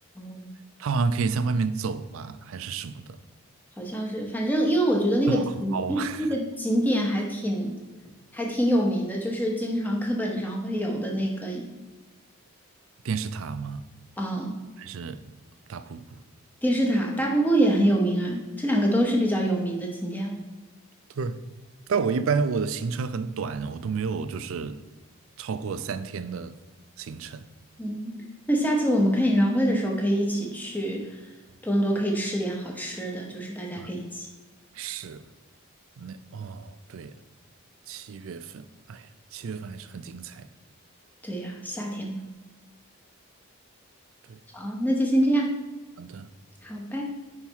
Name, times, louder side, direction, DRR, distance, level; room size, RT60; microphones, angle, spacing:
voice 1, 0.2-0.5 3.8-7.7 8.3-11.6 14.2-14.5 16.6-20.4 27.8-28.2 28.5-31.2 31.6-34.3 41.2-42.2 44.5-45.6 46.6-47.0, equal, 10° left, 0.9 m, -25 dB
voice 2, 0.8-3.2 5.3-6.3 13.0-13.8 14.8-15.2 15.7-16.2 21.2-21.4 21.9-24.8 25.4-26.6 27.0-27.4 33.8-33.9 34.7-35.2 36.0-37.2 37.9-40.5 44.3-44.4 46.0-46.3, right 5 dB, 70° right, 0.4 m, -31 dB
5.5 x 4.3 x 4.5 m
head